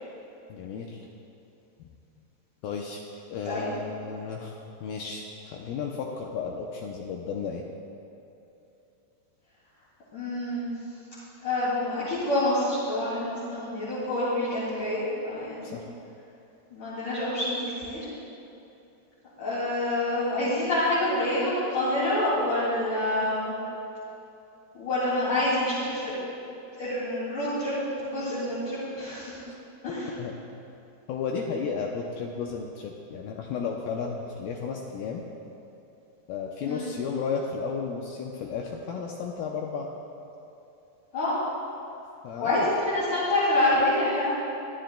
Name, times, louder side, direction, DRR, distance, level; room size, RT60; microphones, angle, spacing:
voice 1, 0.5-1.1 1.8-1.9 2.6-3.0 3.3-4.5 4.8-7.6 15.6-15.9 30.2-30.3 31.1-35.2 36.3-39.9 42.2-42.7, left 5 dB, 85° left, 0 dB, 2.1 m, -33 dB
voice 2, 10.1-10.7 11.4-15.8 16.7-18.0 19.4-23.6 24.7-26.1 26.8-27.7 28.0-29.4 29.8-30.1 36.6-36.9 41.1-41.4 42.4-44.4, left 1 dB, 50° left, -11 dB, 3.8 m, -27 dB
23.5 x 12.0 x 2.2 m, 2.8 s
omnidirectional pair, 5.1 m